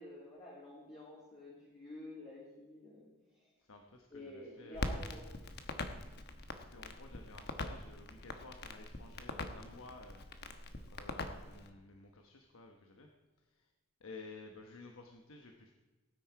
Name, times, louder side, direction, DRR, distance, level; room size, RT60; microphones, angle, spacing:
voice 1, 0.0-3.5 4.1-5.4, left 1 dB, 30° left, -6 dB, 2.6 m, -50 dB
voice 2, 3.6-5.2 6.3-10.3 10.5-13.1 13.4-13.7 14.0-15.7, left 3 dB, 80° left, 3 dB, 1.1 m, -54 dB
Crackle, 4.7-11.7, left 2 dB, 50° left, 1.1 m, -43 dB
17.5 x 9.5 x 4.7 m, 1.2 s
head